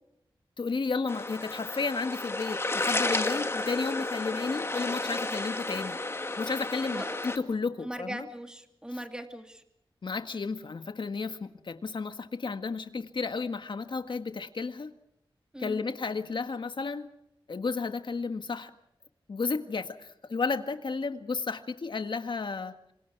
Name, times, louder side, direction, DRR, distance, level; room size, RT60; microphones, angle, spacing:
voice 1, 0.6-6.0 6.4-8.3 10.0-14.9 15.6-17.1 17.5-18.7 19.3-22.7, left 4 dB, 60° left, 8 dB, 1.8 m, -32 dB
sound 1, 1.1-7.4, left 2 dB, 30° left, 2.0 m, -32 dB
voice 2, 7.8-9.6 15.5-15.8, right 1 dB, 10° right, 5 dB, 2.7 m, -39 dB
28.0 x 26.0 x 4.7 m, 0.80 s
wide cardioid pair, 105°, 9 cm